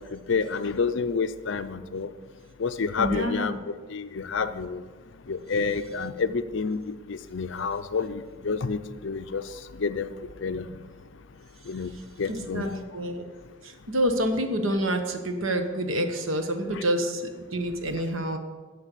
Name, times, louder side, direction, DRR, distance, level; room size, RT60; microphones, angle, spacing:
voice 1, 0.1-2.1 2.6-3.5 3.9-4.8 5.3-9.4 9.7-10.1 10.4-10.7 11.7-11.9 12.2-12.8 16.7-16.8, left 5 dB, 60° left, 12 dB, 0.5 m, -29 dB
voice 2, 3.0-3.6 12.3-13.2 13.6-18.4, right 1 dB, 70° right, 6 dB, 1.2 m, -28 dB
9.9 x 5.4 x 8.2 m, 1.4 s
head